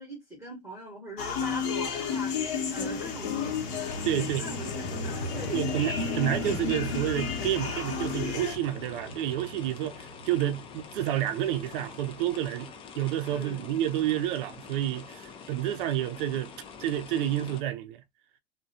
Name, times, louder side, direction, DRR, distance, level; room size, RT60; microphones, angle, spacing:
voice 1, 0.0-3.7 4.2-5.8 13.3-13.7, equal, 10° right, 0.9 m, -42 dB
sound 1, 1.2-8.6, left 6 dB, 50° left, 0.9 m, -32 dB
sound 2, 2.0-12.2, left 1 dB, 90° left, 0.7 m, -39 dB
sound 3, 3.7-17.6, left 6 dB, 20° left, 0.3 m, -46 dB
voice 2, 4.0-4.5 5.5-12.7 13.0-16.5 16.8-18.0, right 12 dB, 60° right, 0.4 m, -29 dB
2.3 x 2.1 x 2.6 m
hypercardioid pair, 95°, 31 cm